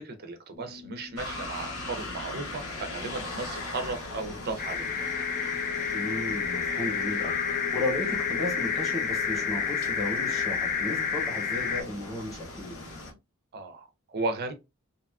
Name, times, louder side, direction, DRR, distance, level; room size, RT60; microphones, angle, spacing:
voice 1, 0.0-4.9 13.5-14.5, right 3 dB, 45° right, 0.4 m, -35 dB
sound 1, 0.5-10.3, left 7 dB, 60° left, 0.8 m, -43 dB
sound 2, 1.2-13.1, left 2 dB, 85° left, 0.9 m, -40 dB
sound 3, 4.6-11.8, left 6 dB, 40° left, 0.4 m, -30 dB
voice 2, 5.9-12.8, left 1 dB, ahead, 0.9 m, -34 dB
2.7 x 2.3 x 2.2 m
head